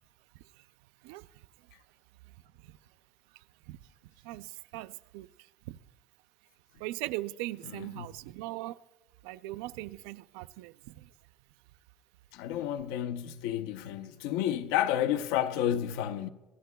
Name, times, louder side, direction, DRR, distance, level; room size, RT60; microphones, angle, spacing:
voice 1, 4.2-5.3 5.7-5.8 6.8-8.8 9.2-11.1, right 18 dB, 85° right, 0.4 m, -39 dB
voice 2, 12.3-16.3, left 11 dB, 85° left, 0.7 m, -31 dB
25.0 x 15.0 x 2.3 m
cardioid pair, 140°, 0 cm